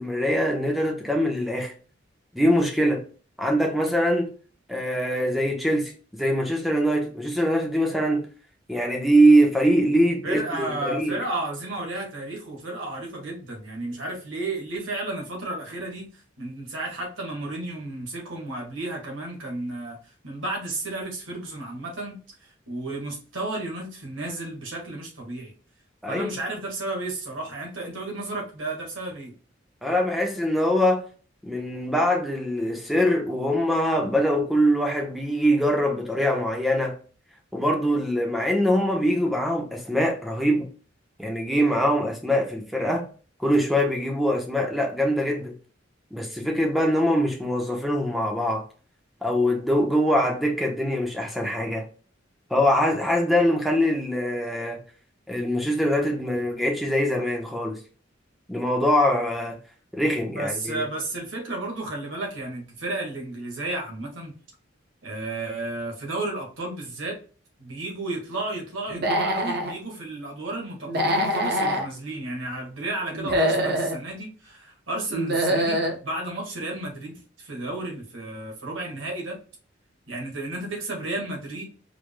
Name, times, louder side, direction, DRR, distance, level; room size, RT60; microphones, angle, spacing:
voice 1, 0.0-1.7 2.3-3.0 3.4-4.3 4.7-8.3 8.7-11.2 26.0-26.3 29.8-31.0 31.4-36.9 37.5-40.7 41.2-43.0 43.4-45.5 46.1-48.6 49.2-51.8 52.5-54.8 55.3-57.8 58.5-59.6 59.9-60.9, equal, ahead, 1.0 m, -23 dB
voice 2, 10.2-20.0 20.2-25.5 26.1-29.3 60.3-64.3 65.0-67.2 67.6-79.4 80.1-81.6, right 2 dB, 85° right, 1.7 m, -33 dB
Human voice / Animal, 68.9-69.7 70.9-71.8 73.1-74.0 75.1-76.0, equal, 55° right, 0.8 m, -24 dB
4.8 x 3.5 x 2.2 m
head